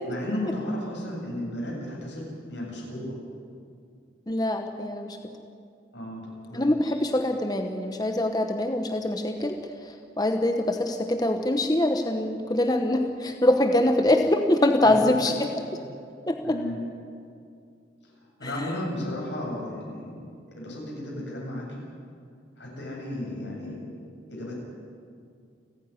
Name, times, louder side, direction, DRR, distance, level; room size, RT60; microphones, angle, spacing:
voice 1, 0.0-3.2 5.9-6.9 14.8-15.1 15.7-15.8 16.4-16.9 18.2-20.2 20.6-21.8 22.6-23.8 24.3-24.5, left 1 dB, 90° left, -2 dB, 7.7 m, -34 dB
voice 2, 4.3-5.2 6.5-9.6 10.2-15.5 16.3-16.6 18.4-18.5, left 1 dB, 20° left, 4 dB, 1.0 m, -24 dB
30.0 x 10.0 x 10.0 m, 2.3 s
head